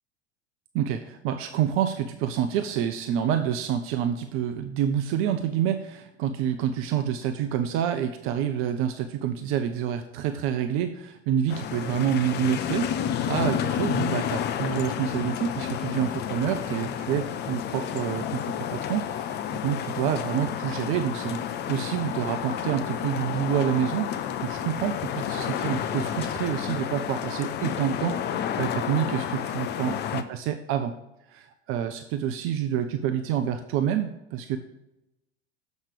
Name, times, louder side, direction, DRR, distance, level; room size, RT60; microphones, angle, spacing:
voice 1, 0.7-21.4 21.7-30.9 31.3-34.6, right 9 dB, 40° right, 8 dB, 0.6 m, -28 dB
sound 1, 11.5-30.2, left 9 dB, 30° left, 0.6 m, -30 dB
7.2 x 5.3 x 4.8 m, 0.90 s
figure-of-eight pair, 80°, 32 cm